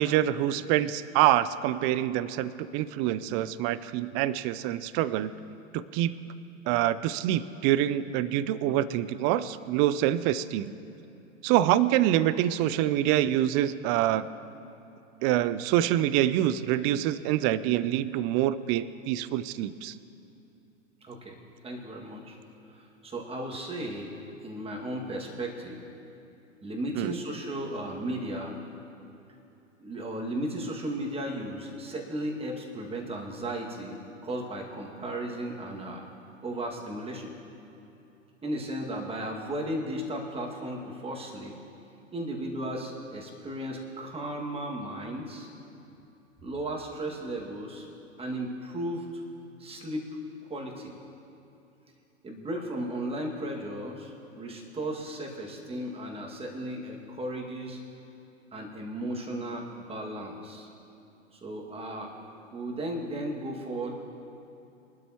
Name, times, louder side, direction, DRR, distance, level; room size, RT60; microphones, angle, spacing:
voice 1, 0.0-5.3 5.7-6.1 6.7-10.7 11.4-14.3 15.2-19.9 27.0-27.2, right 12 dB, 30° right, 16 dB, 0.5 m, -26 dB
voice 2, 21.0-21.4 21.6-22.4 22.7-24.1 24.4-25.8 26.6-28.5 29.8-34.0 34.2-36.1 36.4-37.3 38.4-41.5 42.1-45.5 46.4-47.9 48.2-49.2 49.6-50.2 50.5-50.9 52.2-57.8 58.5-60.7 61.3-62.1 62.5-63.9, right 1 dB, 15° right, 0 dB, 2.1 m, -35 dB
23.0 x 12.5 x 3.0 m, 2.8 s
hypercardioid pair, 105°, 38 cm